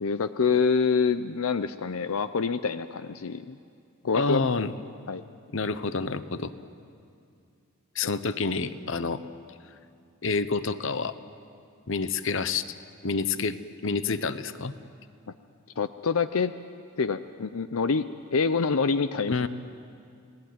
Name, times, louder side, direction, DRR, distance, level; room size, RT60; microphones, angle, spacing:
voice 1, 0.0-3.6 4.0-4.4 5.1-5.2 13.4-13.5 15.8-16.5 17.0-18.0 18.3-19.3, left 5 dB, 85° left, 11 dB, 0.6 m, -26 dB
voice 2, 4.1-4.7 5.5-6.5 7.9-9.2 10.2-11.2 11.9-12.8 13.0-13.6 13.8-14.7 19.3-19.5, left 4 dB, 65° left, 13 dB, 0.9 m, -28 dB
29.5 x 19.0 x 9.4 m, 2.4 s
head